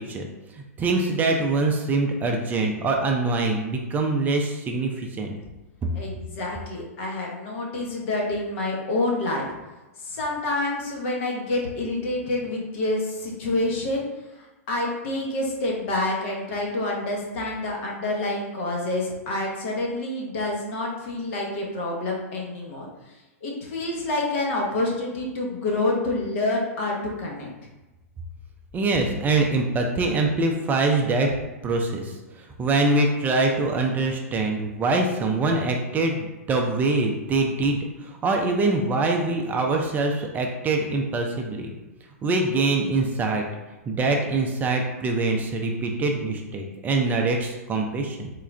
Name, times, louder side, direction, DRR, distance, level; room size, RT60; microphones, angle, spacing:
voice 1, 0.8-5.3 28.7-31.3 31.6-41.7 42.2-43.4 43.9-48.3, right 3 dB, 20° right, 2 dB, 0.4 m, -24 dB
voice 2, 5.9-9.5 10.0-14.0 14.3-23.2 23.4-27.5, left 2 dB, 55° left, -1 dB, 1.0 m, -28 dB
3.8 x 2.3 x 3.2 m, 1.1 s
hypercardioid pair, 115°, 8 cm